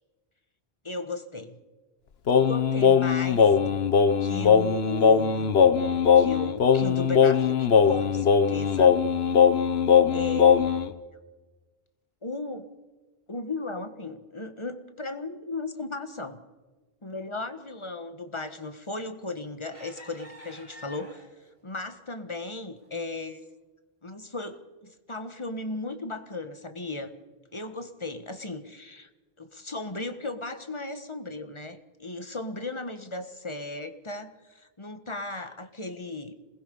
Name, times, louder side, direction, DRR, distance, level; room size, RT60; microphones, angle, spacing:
voice 1, 0.8-1.6 2.4-3.5 4.2-5.5 6.1-9.0 10.1-10.7 12.2-12.7 13.3-16.4 17.0-21.3 21.6-23.4 24.0-27.1 27.5-29.1 29.4-36.4, left 3 dB, 30° left, 9 dB, 1.5 m, -36 dB
Singing, 2.3-10.9, left 7 dB, 80° left, 1.3 m, -20 dB
sound 1, 18.9-19.2 19.7-21.5 22.1-22.2 22.6-22.9, equal, 35° right, 5.8 m, -48 dB
27.5 x 20.0 x 5.5 m, 1.3 s
omnidirectional pair, 1.0 m